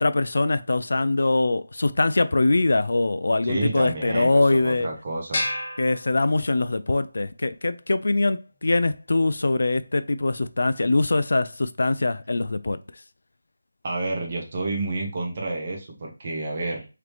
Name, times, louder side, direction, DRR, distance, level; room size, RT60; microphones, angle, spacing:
voice 1, 0.0-4.9 5.8-12.8, left 2 dB, 65° left, 0.3 m, -22 dB
voice 2, 3.4-5.4 13.8-16.9, right 2 dB, 30° right, 1.2 m, -29 dB
sound 1, 5.3-6.8, left 1 dB, 35° left, 1.3 m, -31 dB
3.7 x 3.2 x 3.2 m
figure-of-eight pair, 170°, 0 cm